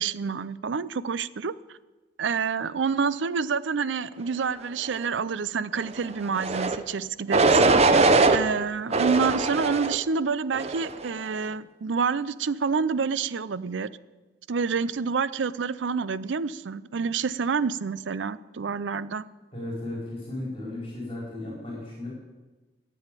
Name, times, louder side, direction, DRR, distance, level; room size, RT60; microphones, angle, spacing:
voice 1, 0.0-1.8 2.2-7.6 8.3-13.9 14.5-19.2, right 5 dB, 80° right, 17 dB, 0.5 m, -28 dB
sound 1, 6.4-6.8 7.3-8.4 8.9-10.0 10.5-11.0, right 3 dB, 35° right, 0.7 m, -21 dB
voice 2, 19.5-22.1, left 1 dB, 30° left, -3 dB, 4.0 m, -35 dB
13.0 x 7.9 x 8.9 m, 1.2 s
head